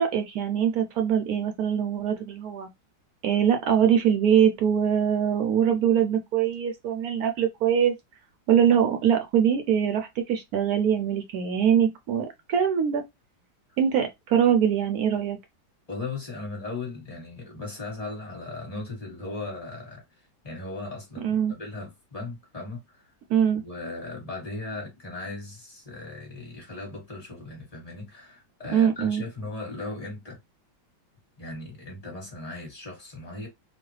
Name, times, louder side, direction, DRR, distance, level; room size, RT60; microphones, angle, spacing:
voice 1, 0.0-2.7 3.2-7.9 8.5-13.0 13.8-15.4 21.2-21.5 23.3-23.6 28.7-29.2, right 8 dB, 75° right, 0.8 m, -23 dB
voice 2, 15.9-20.0 20.4-23.1 23.5-30.4 31.4-33.5, left 2 dB, 20° left, 1.3 m, -37 dB
3.0 x 2.4 x 3.1 m
omnidirectional pair, 2.1 m